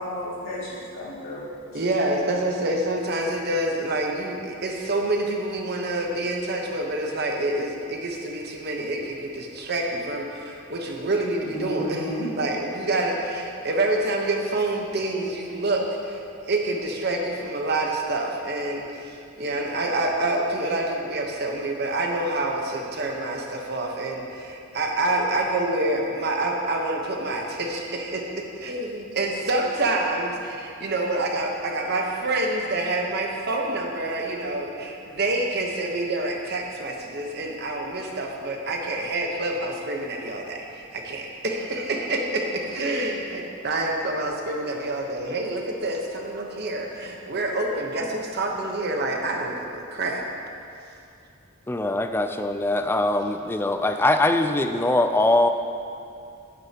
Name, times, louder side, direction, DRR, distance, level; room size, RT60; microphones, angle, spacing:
voice 1, 0.0-1.4 1.7-1.8 11.4-12.3, left 1 dB, 85° left, -8 dB, 2.3 m, -33 dB
voice 2, 1.7-16.2 16.5-50.2, right 2 dB, 55° right, 1 dB, 1.0 m, -27 dB
voice 3, 51.7-55.5, left 2 dB, 10° left, 7 dB, 0.3 m, -22 dB
10.5 x 8.9 x 2.9 m, 2.5 s
head